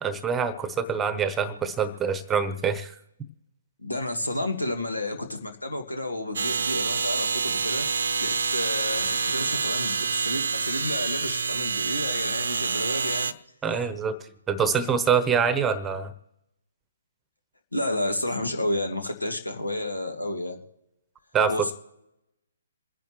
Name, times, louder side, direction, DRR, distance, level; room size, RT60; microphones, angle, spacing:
voice 1, 0.0-2.9 13.6-14.2 14.5-16.1 21.3-21.7, right 6 dB, 15° right, 13 dB, 1.0 m, -25 dB
voice 2, 3.8-13.3 17.7-20.6 21.5-21.7, left 1 dB, 90° left, 6 dB, 1.8 m, -31 dB
sound 1, 6.4-13.3, right 5 dB, 65° right, 0.7 m, -27 dB
27.5 x 10.0 x 3.2 m, 0.89 s
figure-of-eight pair, 130°, 0 cm